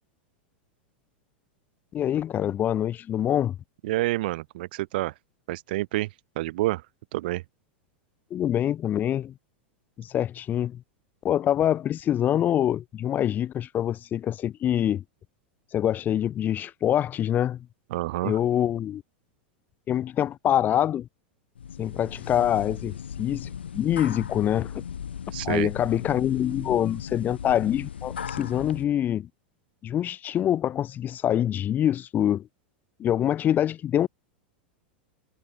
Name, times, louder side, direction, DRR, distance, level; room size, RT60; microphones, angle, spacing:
voice 1, 1.9-3.6 8.3-9.3 10.0-10.8 11.2-15.0 15.7-17.7 18.2-19.0 19.9-21.1 21.8-24.8 25.4-29.3 29.8-32.5 33.0-34.1, left 10 dB, 35° left, 5.7 m, -25 dB
voice 2, 3.8-5.1 5.5-6.1 6.4-6.8 7.1-7.4 17.9-18.4 25.3-25.7, right 18 dB, 65° right, 3.6 m, -28 dB
sound 1, 21.5-28.8, left 8 dB, 90° left, 3.1 m, -37 dB
hypercardioid pair, 105°, 6 cm